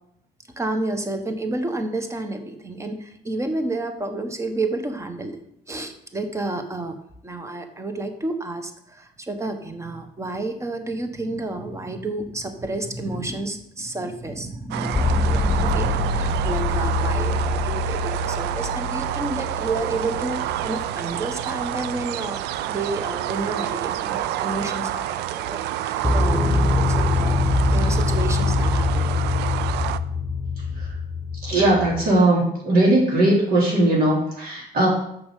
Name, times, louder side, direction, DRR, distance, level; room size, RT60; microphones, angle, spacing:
voice 1, 0.6-5.4 5.7-7.0 7.2-27.4 27.7-29.4, right 2 dB, 15° right, 7 dB, 1.2 m, -30 dB
sound 1, 14.7-30.0, right 13 dB, 85° right, 0.4 m, -28 dB
sound 2, 14.9-22.7 26.0-32.1, left 3 dB, ahead, 1.7 m, -24 dB
voice 2, 31.4-34.9, right 1 dB, 60° right, -4 dB, 3.4 m, -19 dB
7.0 x 6.6 x 6.5 m, 0.75 s
cardioid pair, 110°, 17 cm